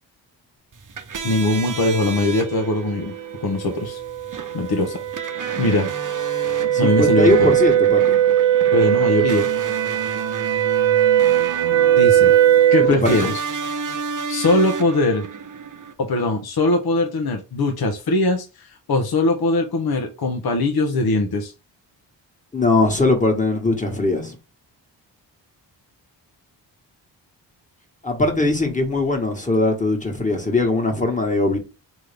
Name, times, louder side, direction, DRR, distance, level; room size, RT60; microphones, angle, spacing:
sound 1, 0.7-15.9, right 6 dB, 45° right, 0.9 m, -32 dB
voice 1, 1.2-3.1 3.4-4.0 4.5-5.0 5.6-5.9 6.8-7.5 8.7-9.5 11.9-12.3 12.7-13.3 14.3-15.2 16.0-21.5, left 2 dB, 55° left, 1.0 m, -21 dB
sound 2, 3.1-13.0, right 11 dB, 90° right, 0.6 m, -19 dB
voice 2, 6.7-8.2 12.8-13.3 22.5-24.4 28.0-31.6, left 2 dB, 15° left, 1.6 m, -20 dB
3.9 x 3.1 x 3.4 m
supercardioid pair, 45°, 46 cm